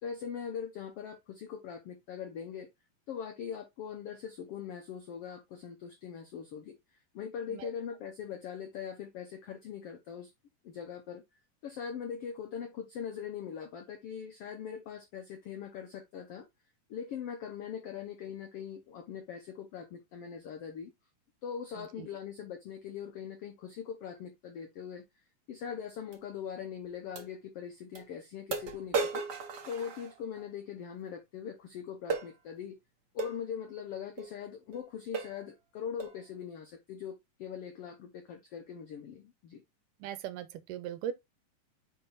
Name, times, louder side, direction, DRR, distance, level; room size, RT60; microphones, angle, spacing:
voice 1, 0.0-2.7 3.1-6.8 7.1-10.3 10.6-11.2 11.6-16.5 16.9-20.9 21.4-25.0 25.5-29.2 29.7-32.8 33.1-39.6, left 7 dB, 85° left, 1.3 m, -41 dB
sound 1, 26.1-26.2 27.1-27.3 27.9-28.0 28.5-30.5 32.1-32.3 33.2-33.4 34.2-34.3 34.7-34.8 35.1-35.4 36.0-36.2, right 4 dB, 65° right, 1.0 m, -35 dB
voice 2, 40.0-41.1, right 10 dB, 80° right, 2.2 m, -39 dB
5.6 x 4.6 x 4.0 m
omnidirectional pair, 3.9 m